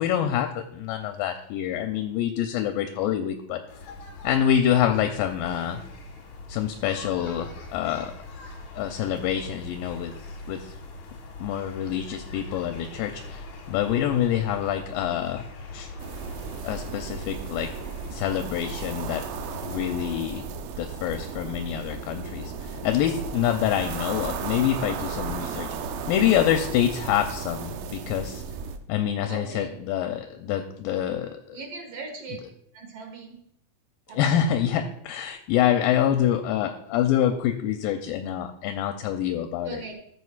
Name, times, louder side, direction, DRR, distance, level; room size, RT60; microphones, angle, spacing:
voice 1, 0.0-3.6 4.2-5.8 6.5-8.1 8.8-10.1 10.5-10.7 11.4-15.4 15.7-15.9 16.6-17.7 18.1-19.2 19.6-20.4 20.8-25.7 26.1-28.4 28.9-31.6 34.1-39.8, left 10 dB, 80° left, 6 dB, 2.3 m, -26 dB
sound 1, 3.7-20.2, left 2 dB, 60° left, 2.4 m, -42 dB
sound 2, 16.0-28.8, right 5 dB, 75° right, 2.2 m, -35 dB
voice 2, 29.3-29.8 31.5-32.4 32.7-33.4 34.1-34.5 36.0-36.2 39.6-39.9, right 4 dB, 50° right, 3 dB, 2.4 m, -39 dB
13.5 x 8.3 x 2.4 m, 0.71 s
omnidirectional pair, 4.2 m